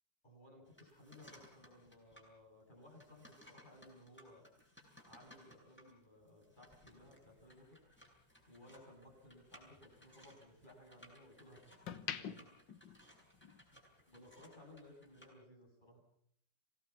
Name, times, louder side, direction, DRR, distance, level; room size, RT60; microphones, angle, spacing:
voice 1, 0.2-4.4 5.1-7.8 8.5-11.8 12.1-12.5 14.1-16.0, left 1 dB, 25° left, 0 dB, 8.1 m, -60 dB
sound 1, 0.6-2.3 2.7-15.3, equal, 5° left, 8.0 m, -63 dB
sound 2, 7.0-9.4 9.8-11.2 11.6-13.8 14.1-14.3, left 8 dB, 75° left, 2.0 m, -48 dB
27.5 x 18.5 x 7.2 m, 0.67 s
omnidirectional pair, 2.0 m